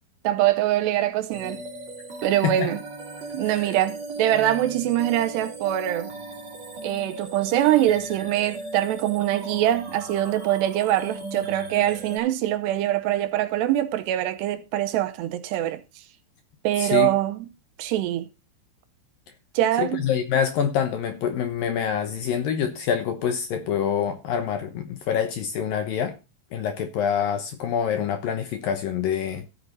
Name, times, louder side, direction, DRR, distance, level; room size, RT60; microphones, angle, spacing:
voice 1, 0.2-1.6 2.2-2.8 3.3-6.1 6.8-15.8 16.6-17.5 17.8-18.3 19.5-20.0, right 13 dB, 75° right, 2.8 m, -23 dB
sound 1, 1.3-12.2, right 2 dB, 40° right, 3.5 m, -37 dB
voice 2, 16.8-17.1 19.8-26.2 26.5-29.5, left 8 dB, 70° left, 2.3 m, -26 dB
15.0 x 8.5 x 3.9 m
omnidirectional pair, 5.2 m